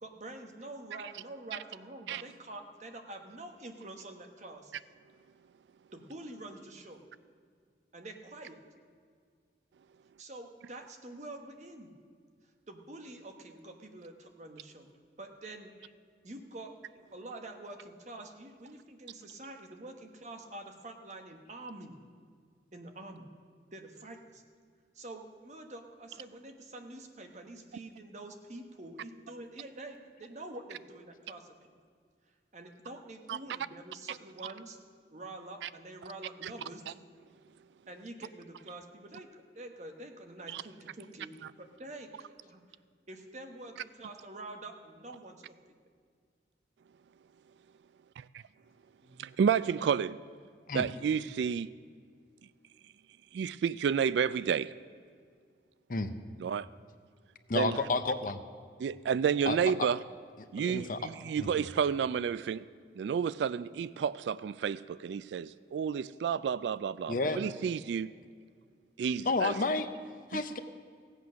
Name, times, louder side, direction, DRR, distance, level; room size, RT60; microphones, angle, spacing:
voice 1, 0.0-4.7 5.9-7.0 7.9-8.6 10.2-11.9 12.7-14.9 15.2-15.7 16.2-16.7 17.1-22.0 22.7-23.3 23.7-24.4 24.9-31.7 32.5-34.8 35.1-36.8 37.9-42.1 42.4-42.6 43.1-45.7 49.0-49.3 50.7-50.8, right 2 dB, 40° right, 4 dB, 1.2 m, -47 dB
voice 2, 49.2-50.2 50.7-51.7 53.3-54.7 56.4-56.7 57.5-57.8 58.8-60.0 60.5-62.7 63.0-68.1 69.0-69.6 70.3-70.4, right 7 dB, 80° right, 17 dB, 0.3 m, -30 dB
voice 3, 57.5-58.4 59.5-59.9 60.4-61.0 61.4-61.7 67.1-67.4 69.2-69.9 70.3-70.6, left 3 dB, 50° left, 9 dB, 0.7 m, -31 dB
16.0 x 8.3 x 6.2 m, 2.1 s
head